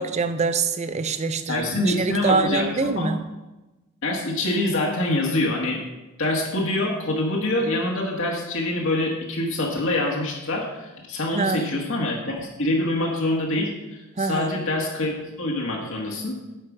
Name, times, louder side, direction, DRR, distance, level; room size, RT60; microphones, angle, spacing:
voice 1, 0.0-3.2 11.3-11.8 14.2-14.6, right 4 dB, 30° right, 10 dB, 0.5 m, -25 dB
voice 2, 1.5-3.1 4.0-5.8 6.2-16.4, left 1 dB, 60° left, -1 dB, 1.4 m, -25 dB
9.2 x 4.8 x 6.0 m, 1.0 s
head